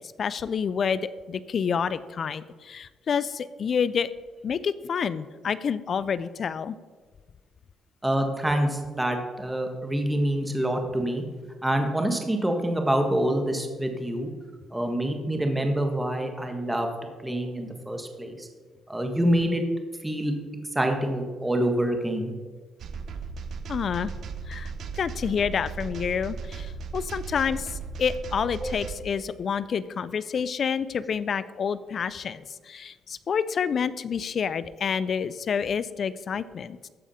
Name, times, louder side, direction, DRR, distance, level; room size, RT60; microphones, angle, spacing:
voice 1, 0.0-4.1 4.4-6.8 23.7-24.1 24.5-36.9, left 6 dB, 50° left, 16 dB, 0.4 m, -28 dB
voice 2, 8.0-11.2 11.6-14.3 14.7-16.9 17.2-18.5 18.9-19.6 20.0-20.3 20.7-22.3 28.6-28.7, right 1 dB, 10° right, 4 dB, 1.5 m, -26 dB
sound 1, 22.8-29.0, right 5 dB, 65° right, 0.8 m, -36 dB
14.5 x 4.9 x 5.6 m, 1.4 s
cardioid pair, 90°, 0 cm